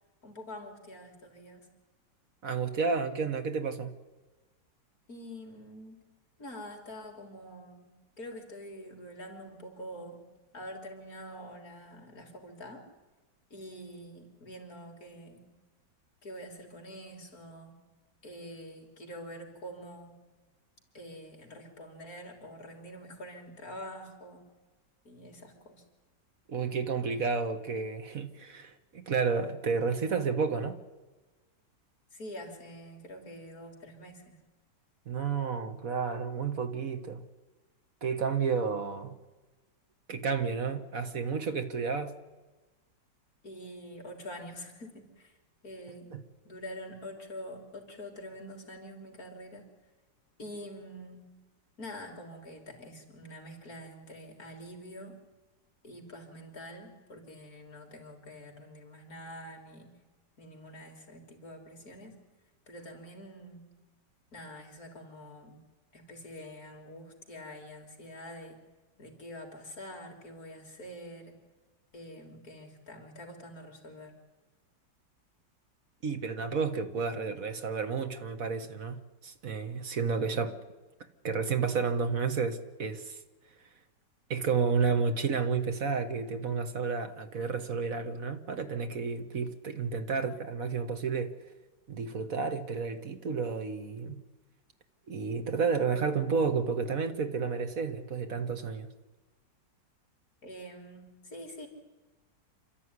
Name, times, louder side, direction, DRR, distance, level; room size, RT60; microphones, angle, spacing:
voice 1, 0.2-1.7 5.1-6.1 6.4-10.2 10.5-12.8 13.5-15.5 16.2-17.8 18.2-20.2 20.9-24.5 25.0-25.8 32.1-34.4 43.4-45.3 45.6-46.2 46.4-49.7 50.4-51.3 51.8-55.2 55.8-60.0 60.4-62.2 62.7-63.7 64.3-65.6 65.9-68.6 69.0-71.4 71.9-74.2 100.4-101.7, equal, 50° left, 4.0 m, -46 dB
voice 2, 2.4-3.9 26.5-30.8 35.1-37.2 38.0-39.1 40.1-42.1 46.1-46.2 76.0-80.6 81.2-83.2 84.3-91.4 91.9-94.2 95.1-98.9, right 5 dB, 50° right, 1.7 m, -31 dB
27.5 x 13.5 x 9.7 m
omnidirectional pair, 2.0 m